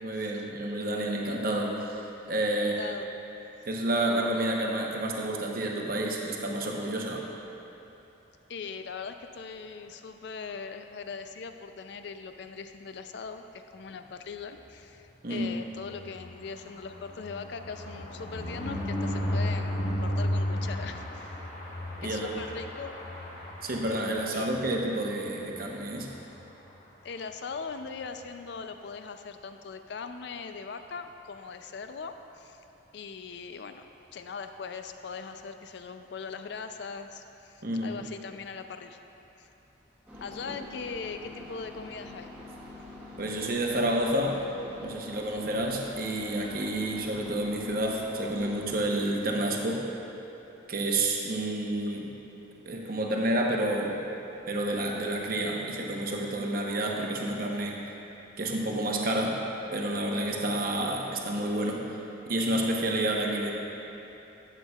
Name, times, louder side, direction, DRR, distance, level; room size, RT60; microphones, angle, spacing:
voice 1, 0.0-2.9 3.7-7.2 15.2-15.5 22.0-22.3 23.6-26.1 37.6-38.0 40.4-40.5 43.2-44.4 44.8-49.8 50.7-52.1 52.7-53.9 54.5-57.8 58.4-59.4 59.7-61.8 62.3-63.5, right 1 dB, 45° right, -1 dB, 0.8 m, -29 dB
voice 2, 2.6-3.1 3.6-3.7 8.5-21.4 22.0-22.9 24.3-24.7 27.0-32.6 32.9-33.8 34.1-39.0 39.4-39.5 40.2-42.3, left 5 dB, 60° left, 8 dB, 0.4 m, -40 dB
sound 1, 15.8-24.6 25.0-25.2 25.4-25.5 25.8-26.1, left 1 dB, 35° left, 1.2 m, -34 dB
sound 2, 40.1-48.8, left 2 dB, 5° right, 1.3 m, -46 dB
12.0 x 8.0 x 2.3 m, 3.0 s
head